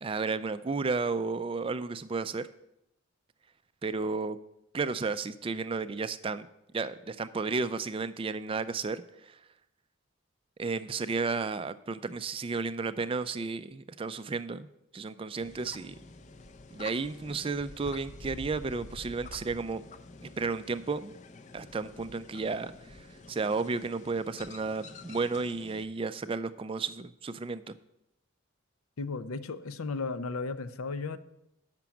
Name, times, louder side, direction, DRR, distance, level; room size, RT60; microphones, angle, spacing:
voice 1, 0.0-2.5 3.8-4.4 4.7-6.5 6.7-9.4 10.6-14.7 14.9-16.0 16.7-19.8 20.4-21.1 21.5-23.0 23.3-27.7, right 4 dB, 25° right, 13 dB, 0.3 m, -33 dB
sound 1, 15.4-25.9, left 3 dB, 35° left, 0.5 m, -48 dB
voice 2, 29.0-31.2, left 4 dB, 85° left, 12 dB, 0.6 m, -35 dB
8.9 x 6.0 x 7.1 m, 0.83 s
head